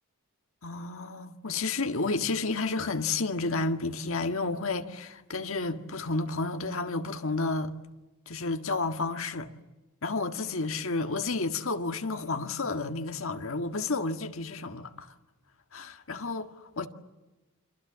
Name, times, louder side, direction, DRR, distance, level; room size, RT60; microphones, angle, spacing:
voice 1, 0.6-7.7 8.3-9.5 10.0-15.1 15.7-16.9, left 3 dB, 60° left, 1.8 m, -31 dB
29.5 x 26.5 x 7.5 m
head